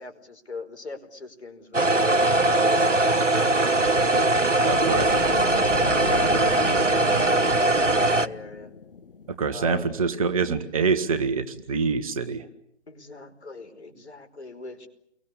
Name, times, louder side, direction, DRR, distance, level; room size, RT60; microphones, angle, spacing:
voice 1, 0.0-8.7 9.5-9.9 12.9-14.9, left 3 dB, 65° left, 8 dB, 5.0 m, -41 dB
sound 1, 1.7-8.3, right 2 dB, 85° right, 1.3 m, -21 dB
voice 2, 4.6-5.1 9.4-12.4, right 5 dB, 30° right, 11 dB, 1.5 m, -25 dB
sound 2, 4.7-9.6, left 5 dB, 50° left, 1.6 m, -36 dB
30.0 x 23.0 x 8.5 m, 0.74 s
figure-of-eight pair, 140°, 36 cm